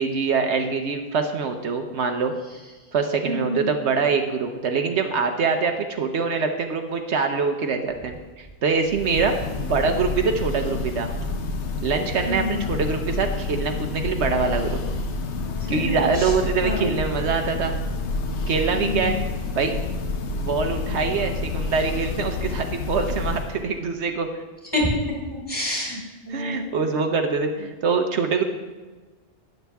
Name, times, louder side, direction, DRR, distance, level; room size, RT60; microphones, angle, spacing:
voice 1, 0.0-2.3 2.9-11.1 11.8-14.8 15.7-17.7 18.5-19.2 19.5-19.7 20.4-24.3 26.3-28.4, right 5 dB, 70° right, 5 dB, 1.1 m, -24 dB
voice 2, 3.2-3.7 12.2-12.6 16.2-16.3 16.6-16.9 18.7-19.2 24.7-24.9 25.3-26.7, left 1 dB, 20° left, -3 dB, 3.3 m, -28 dB
Church bell, 8.8-23.7, left 3 dB, 75° left, 1.1 m, -29 dB
12.0 x 9.5 x 3.5 m, 1.3 s
omnidirectional pair, 1.2 m